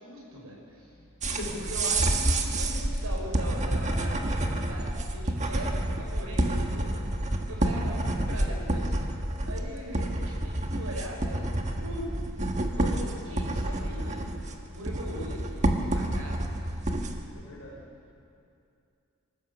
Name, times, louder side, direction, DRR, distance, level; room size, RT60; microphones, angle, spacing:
voice 1, 0.0-0.9 1.7-6.9 7.5-8.9 9.5-12.0 12.8-14.4 14.7-16.5, right 1 dB, 85° right, -1 dB, 5.7 m, -40 dB
voice 2, 0.9-1.6 14.6-14.7 16.8-17.8, left 1 dB, 70° left, -1 dB, 4.6 m, -43 dB
sound 1, 1.2-17.2, right 1 dB, 35° right, 1.5 m, -29 dB
24.5 x 15.0 x 7.0 m, 2.6 s
head